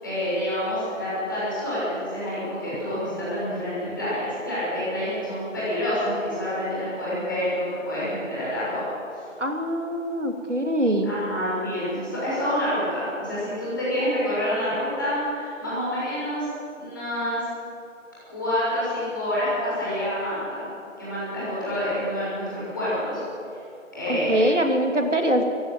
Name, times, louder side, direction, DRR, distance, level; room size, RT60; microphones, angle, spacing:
voice 1, 0.0-8.8 11.0-16.5 16.8-17.4 18.3-20.7 21.0-23.2 23.9-24.6, equal, 15° left, -10 dB, 6.6 m, -27 dB
voice 2, 9.4-11.1 24.1-25.4, right 1 dB, 65° right, 4 dB, 2.8 m, -23 dB
19.0 x 15.5 x 9.3 m, 2.6 s
figure-of-eight pair, 175°, 39 cm